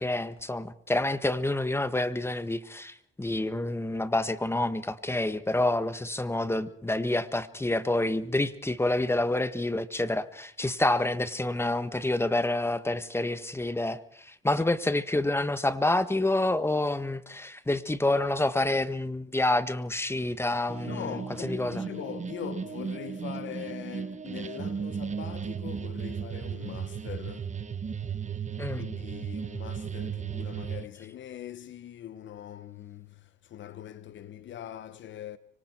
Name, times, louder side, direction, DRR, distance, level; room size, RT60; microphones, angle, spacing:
voice 1, 0.0-21.8 28.6-28.9, left 2 dB, 10° left, 1.5 m, -28 dB
sound 1, 20.7-30.9, right 7 dB, 35° right, 1.2 m, -35 dB
voice 2, 20.9-27.6 28.7-35.4, left 11 dB, 70° left, 1.0 m, -42 dB
25.5 x 24.5 x 4.6 m
cardioid pair, 90°, 20 cm